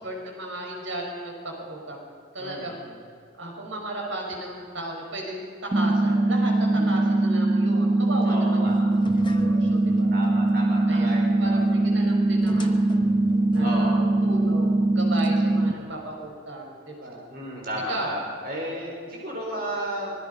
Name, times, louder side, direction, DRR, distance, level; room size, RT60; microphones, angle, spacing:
voice 1, 0.0-2.1 2.3-2.8 3.3-10.2 10.9-12.9 13.5-17.3 17.9-18.1, right 1 dB, 80° right, 0 dB, 5.5 m, -35 dB
voice 2, 2.4-2.8 6.7-7.1 8.2-8.7 10.1-12.0 13.6-14.0 15.4-15.8 17.3-20.1, equal, 45° right, -2 dB, 4.9 m, -34 dB
sound 1, 5.7-15.7, right 2 dB, 25° right, 0.5 m, -22 dB
sound 2, 8.7-16.2, left 1 dB, 25° left, 1.0 m, -42 dB
25.0 x 21.0 x 5.4 m, 2.3 s
head